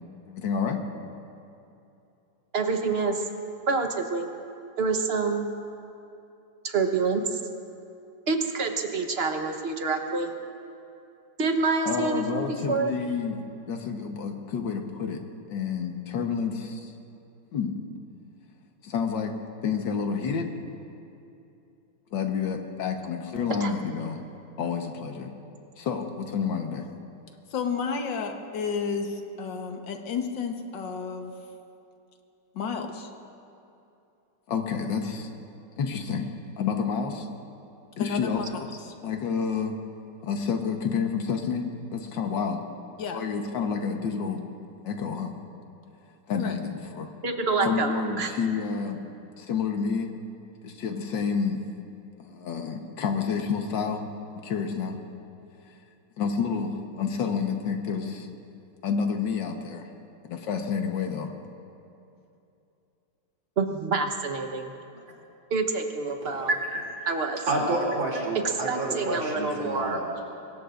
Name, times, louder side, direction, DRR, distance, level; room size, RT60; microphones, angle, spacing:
voice 1, 0.3-0.8 11.9-13.4 13.7-15.2 15.5-16.9 17.5-17.7 18.8-20.5 22.1-24.2 24.6-25.3 25.8-26.9 27.5-31.3 32.6-33.1 34.5-35.3 35.8-36.3 36.6-37.3 38.0-39.8 40.2-42.6 43.0-44.4 44.8-45.3 46.3-47.1 47.6-49.0 49.4-50.1 50.6-51.6 52.2-55.0 56.2-58.3 58.8-59.9 60.2-61.3, left 6 dB, 75° left, 4 dB, 1.9 m, -29 dB
voice 2, 2.5-3.2 3.7-4.3 4.8-5.5 6.6-7.4 8.3-10.3 11.4-12.9 23.6-23.7 47.2-48.3 63.6-64.7 65.5-66.5 67.1-67.4 68.7-70.0, right 4 dB, 40° right, 4 dB, 1.2 m, -27 dB
voice 3, 66.5-66.8 67.5-70.2, right 2 dB, 90° right, -4 dB, 3.7 m, -28 dB
25.5 x 21.0 x 2.6 m, 2.7 s
omnidirectional pair, 2.0 m